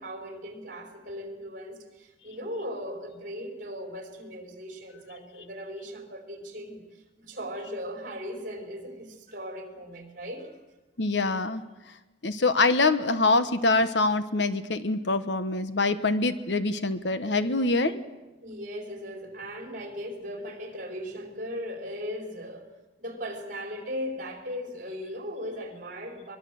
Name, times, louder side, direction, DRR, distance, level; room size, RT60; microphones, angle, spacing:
voice 1, 0.0-10.5 18.4-22.7 23.0-26.4, equal, 45° right, 4 dB, 4.7 m, -38 dB
voice 2, 11.0-11.6 12.2-18.0, left 3 dB, 65° left, 11 dB, 1.2 m, -24 dB
23.0 x 22.5 x 7.9 m, 1.1 s
head